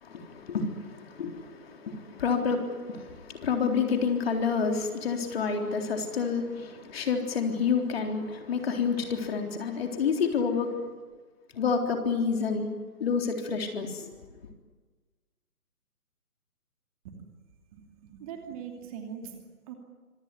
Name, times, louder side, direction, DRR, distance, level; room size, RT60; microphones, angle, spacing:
voice 1, 0.0-10.8 11.5-12.7 13.0-14.1, left 5 dB, 40° left, 3.8 m, -29 dB
voice 2, 17.7-19.7, right 7 dB, 25° right, 2.7 m, -42 dB
26.0 x 18.0 x 9.9 m
figure-of-eight pair, 150°, 45 cm